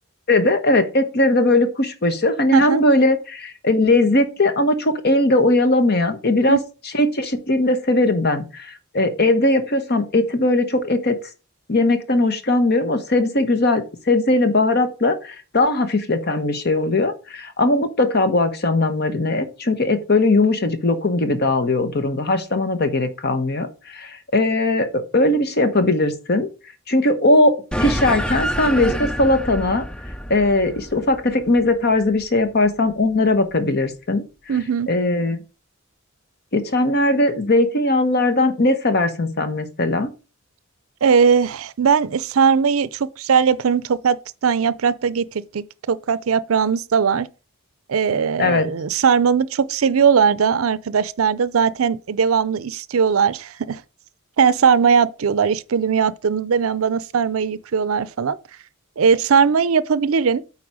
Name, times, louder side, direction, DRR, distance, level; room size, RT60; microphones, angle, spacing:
voice 1, 0.3-6.6 6.9-11.2 11.7-26.5 26.9-27.5 27.8-29.9 30.3-34.2 34.9-35.4 36.5-40.1 48.4-48.7, left 2 dB, 50° left, 1.1 m, -19 dB
sound 1, 27.7-32.5, equal, 5° left, 0.4 m, -27 dB
voice 2, 34.5-34.9 41.0-44.2 44.4-47.3 47.9-53.8 54.4-58.4 59.0-60.4, right 6 dB, 75° right, 0.5 m, -19 dB
8.7 x 4.3 x 4.8 m
head